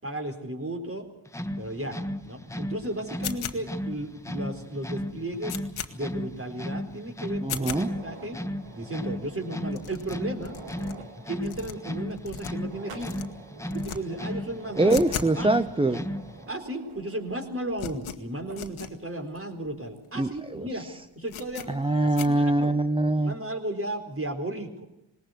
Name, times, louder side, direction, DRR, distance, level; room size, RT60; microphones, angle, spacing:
voice 1, 0.0-1.1 1.6-2.0 2.2-5.6 5.9-8.4 8.7-10.6 11.3-13.2 13.7-15.0 15.4-15.5 15.8-15.9 16.5-20.9 21.2-22.8 23.2-24.9, right 1 dB, 25° right, 5 dB, 4.3 m, -34 dB
sound 1, 1.3-16.5, equal, 5° left, 1.4 m, -35 dB
sound 2, 3.2-3.9 4.4-4.5 4.8-4.9 5.2-5.9 6.4-6.5 6.8-6.9 7.4-7.8 8.4-8.5 8.6-8.7 8.9-9.1 9.3-9.4 9.7-10.9 11.4-12.7 13.0-13.2 13.6-14.0 14.3-15.4 15.6-15.7 16.4-16.5 16.6-17.0 17.3-18.9 19.3-19.4 19.7-19.8 20.2-20.4 20.7-20.8 21.3-21.7 22.2-22.3, left 9 dB, 70° left, 1.6 m, -37 dB
sound 3, 7.3-18.1 18.5-18.6 19.4-19.5 20.0-20.1 21.4-21.7, right 4 dB, 80° right, 2.4 m, -48 dB
voice 2, 7.4-7.9 14.8-16.1 20.2-20.9 21.7-23.3, right 2 dB, 10° right, 11 dB, 0.7 m, -24 dB
20.0 x 19.0 x 8.0 m, 0.84 s
cardioid pair, 60°, 50 cm